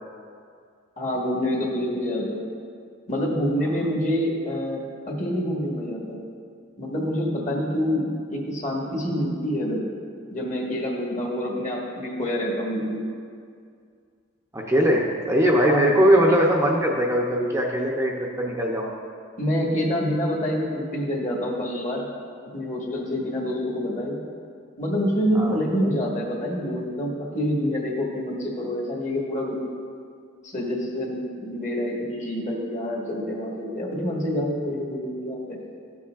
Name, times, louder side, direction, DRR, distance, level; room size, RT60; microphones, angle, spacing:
voice 1, 1.0-2.5 3.1-6.2 6.8-9.9 10.3-13.0 15.6-15.9 19.4-22.1 22.5-24.2 24.8-29.7 30.4-35.6, equal, 40° left, -2 dB, 1.4 m, -27 dB
voice 2, 14.5-18.9 25.4-25.6, equal, 15° right, -2 dB, 0.6 m, -20 dB
13.5 x 7.0 x 2.4 m, 2.2 s
head